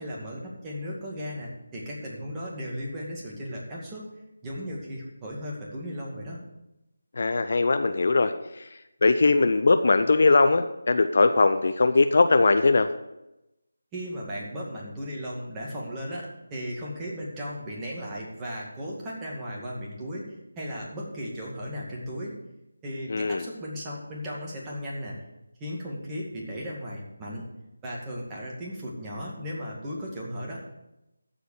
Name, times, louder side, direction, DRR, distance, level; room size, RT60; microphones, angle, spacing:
voice 1, 0.0-4.1 4.4-6.4 13.9-22.4 22.8-25.2 25.6-27.5 27.8-30.6, equal, 15° right, -4 dB, 2.2 m, -36 dB
voice 2, 7.2-8.7 9.0-12.9 23.1-23.4, left 3 dB, 50° left, 9 dB, 0.6 m, -21 dB
14.0 x 5.1 x 6.6 m, 0.91 s
figure-of-eight pair, 160°, 0 cm